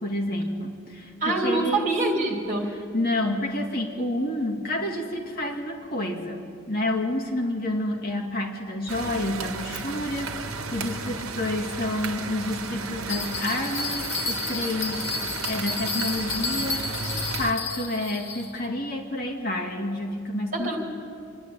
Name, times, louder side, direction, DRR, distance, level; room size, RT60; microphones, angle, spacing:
voice 1, 0.0-1.9 2.7-15.1 15.4-17.1 17.4-20.8, left 1 dB, 45° left, -1 dB, 2.1 m, -29 dB
voice 2, 1.2-2.7 20.5-20.8, right 2 dB, 35° right, 0 dB, 2.9 m, -25 dB
sound 1, 8.9-17.5, right 4 dB, 85° right, 1.3 m, -34 dB
Bell, 13.1-18.6, left 4 dB, 65° left, 1.8 m, -31 dB
26.0 x 11.5 x 8.8 m, 2.5 s
head